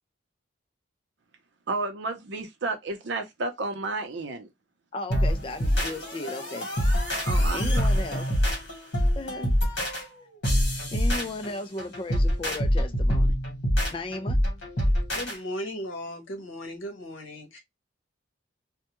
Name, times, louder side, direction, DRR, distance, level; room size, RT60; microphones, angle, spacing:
voice 1, 1.7-4.5 7.3-8.2, right 3 dB, 65° right, 0.6 m, -32 dB
voice 2, 4.9-6.7 7.5-8.3 9.2-9.5 10.9-13.4 13.9-14.4, left 2 dB, 25° left, 0.3 m, -35 dB
sound 1, 5.1-15.4, equal, 65° left, 1.2 m, -25 dB
voice 3, 15.1-17.6, equal, 80° left, 0.8 m, -36 dB
2.2 x 2.2 x 2.9 m
head